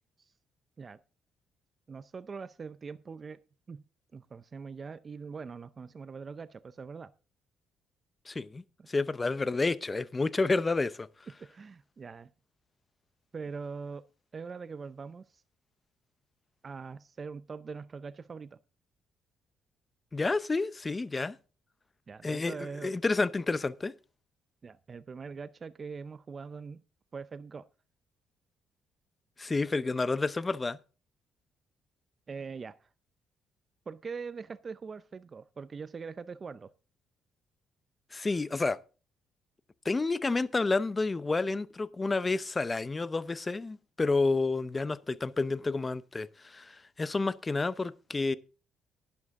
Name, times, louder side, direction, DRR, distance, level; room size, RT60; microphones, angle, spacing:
voice 1, 1.9-3.4 3.7-3.8 4.1-7.1 8.8-8.9 11.5-12.3 13.3-14.1 14.3-15.4 16.6-18.6 22.1-22.9 24.6-26.8 27.1-27.7 32.3-32.9 33.9-36.7, right 5 dB, 35° right, 0.5 m, -42 dB
voice 2, 8.3-11.1 20.1-21.4 22.2-23.9 29.4-30.8 38.1-38.8 39.8-48.4, left 3 dB, 25° left, 0.7 m, -30 dB
11.5 x 11.0 x 3.6 m
cardioid pair, 100°, 0 cm